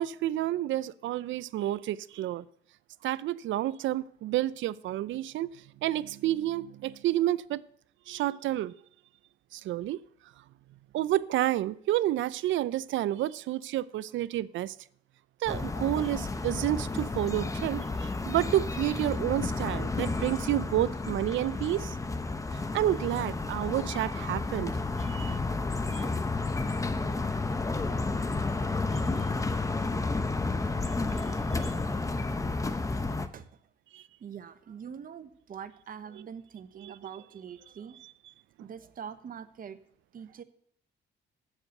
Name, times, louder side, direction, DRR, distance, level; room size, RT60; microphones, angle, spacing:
voice 1, 0.0-2.4 3.0-5.6 5.8-7.6 8.1-8.7 9.5-10.0 10.9-14.7 15.4-21.9 22.7-24.7 25.1-25.4 25.9-26.0 31.6-31.7 33.9-34.0, right 14 dB, 75° right, 0.4 m, -30 dB
sound 1, 15.5-33.3, left 3 dB, 15° left, 0.7 m, -31 dB
voice 2, 33.3-33.7 34.2-38.0 38.6-39.8 40.1-40.4, right 7 dB, 45° right, 0.8 m, -44 dB
7.3 x 6.6 x 8.0 m
cardioid pair, 90°, 20 cm